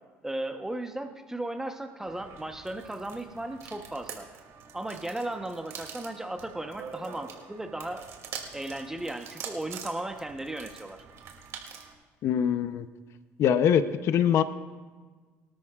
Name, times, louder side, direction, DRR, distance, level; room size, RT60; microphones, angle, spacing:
voice 1, 0.2-4.3 4.7-8.1 8.5-11.0, right 1 dB, 10° right, 6 dB, 1.0 m, -36 dB
sound 1, 2.1-11.9, right 7 dB, 60° right, 2.7 m, -45 dB
voice 2, 12.2-12.9 13.4-14.4, left 9 dB, 60° left, 11 dB, 0.7 m, -23 dB
24.0 x 13.0 x 2.4 m, 1.4 s
cardioid pair, 105°, 5 cm